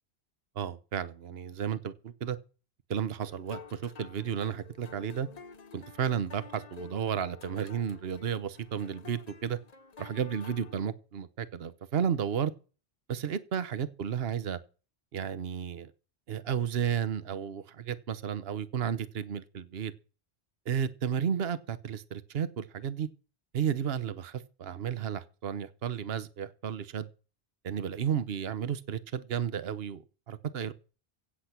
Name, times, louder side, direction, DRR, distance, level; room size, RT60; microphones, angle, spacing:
voice 1, 0.6-2.4 2.9-5.3 5.7-9.6 10.0-12.5 13.1-14.6 15.1-15.9 16.3-19.9 20.7-23.1 23.5-27.1 27.6-30.7, right 8 dB, 65° right, 1.2 m, -33 dB
sound 1, 3.2-10.8, left 6 dB, 40° left, 0.9 m, -51 dB
16.5 x 8.3 x 5.9 m
omnidirectional pair, 1.1 m